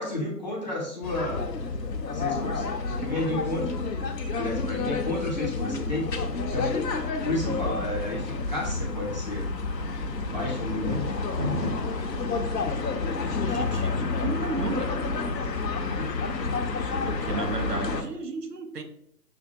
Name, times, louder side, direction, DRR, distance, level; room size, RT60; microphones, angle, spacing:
voice 1, 0.0-1.5 2.1-3.8 4.3-6.1 6.5-6.8 7.3-9.5 10.2-11.0 13.6-13.8 15.8-16.5, left 2 dB, 30° left, -3 dB, 0.6 m, -32 dB
sound 1, 1.0-18.0, left 4 dB, 80° left, 0.7 m, -29 dB
sound 2, 10.7-12.0, left 1 dB, 35° right, 1.2 m, -30 dB
voice 2, 13.3-14.9 17.0-18.8, right 4 dB, 70° right, 7 dB, 0.8 m, -33 dB
6.2 x 2.2 x 2.6 m, 0.70 s
figure-of-eight pair, 155°, 49 cm